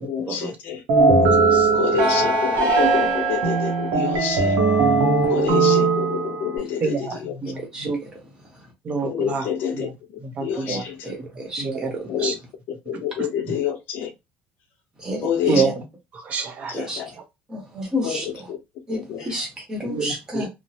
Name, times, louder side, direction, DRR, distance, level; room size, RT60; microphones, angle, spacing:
voice 1, 0.0-0.8 1.7-4.6 5.3-7.6 9.0-11.1 12.1-12.4 12.7-14.1 15.2-15.7 16.7-17.1 18.0-18.6 18.9-19.4, left 8 dB, 50° left, 0.7 m, -28 dB
sound 1, 0.9-6.6, right 3 dB, 65° right, 0.8 m, -19 dB
voice 2, 1.1-1.7 6.8-7.2 7.4-8.0 8.8-9.5 9.7-9.9 10.2-10.8 11.6-11.9 12.2-12.3 13.2-13.3 15.5-15.7 16.1-16.7 19.8-20.5, right 5 dB, 30° right, 0.6 m, -27 dB
voice 3, 7.4-8.1 8.5-8.7 10.7-12.1 15.0-15.7 16.7-17.0 17.5-18.3 18.9-20.5, equal, 15° right, 1.0 m, -30 dB
3.0 x 2.0 x 2.7 m
cardioid pair, 165°, 4 cm